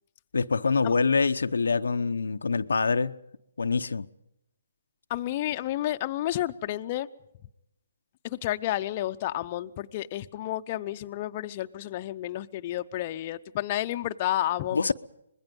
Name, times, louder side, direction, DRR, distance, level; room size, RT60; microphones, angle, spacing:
voice 1, 0.3-3.2 3.6-4.1 14.7-14.9, left 4 dB, 85° left, 0.8 m, -25 dB
voice 2, 5.1-7.1 8.2-14.9, left 14 dB, 35° left, 0.7 m, -31 dB
25.5 x 21.0 x 5.3 m
hypercardioid pair, 150°, 0 cm